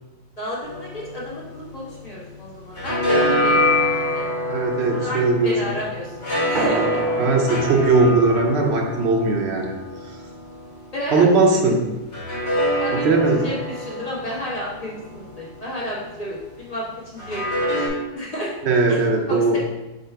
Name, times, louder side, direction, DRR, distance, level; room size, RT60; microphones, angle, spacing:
voice 1, 0.4-4.3 4.9-6.2 6.4-7.0 10.9-11.6 12.8-13.1 13.4-16.8 17.1-18.5 18.9-19.0 19.3-19.6, equal, 35° left, -6 dB, 1.3 m, -31 dB
sound 1, 0.6-2.3 2.6-11.3 12.1-16.2 17.2-17.9, left 1 dB, 65° left, 1.7 m, -26 dB
voice 2, 4.5-5.6 7.2-9.7 11.1-11.8 12.9-13.4 18.6-19.6, right 3 dB, 80° right, 2 dB, 1.0 m, -19 dB
sound 2, 6.5-11.6, right 2 dB, 50° right, 0.8 m, -33 dB
5.1 x 2.3 x 4.4 m, 1.0 s
omnidirectional pair, 1.1 m